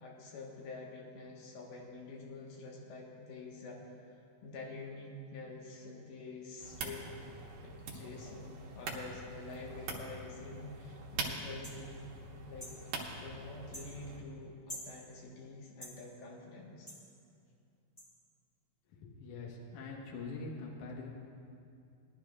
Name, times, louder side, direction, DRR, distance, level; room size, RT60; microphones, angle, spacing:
voice 1, 0.0-4.2 4.4-7.0 7.6-12.0 12.5-12.7 13.2-16.9, left 3 dB, 80° left, -3 dB, 3.2 m, -47 dB
sound 1, 6.6-14.2, right 3 dB, 70° right, 2.6 m, -44 dB
sound 2, 11.6-11.8 12.6-12.8 13.7-13.9 14.7-14.9 15.8-16.0 16.9-17.0 18.0-18.1, equal, 30° left, 0.5 m, -46 dB
voice 2, 18.9-21.1, left 3 dB, 65° left, -2 dB, 2.5 m, -44 dB
20.5 x 12.0 x 2.4 m, 2.5 s
omnidirectional pair, 4.2 m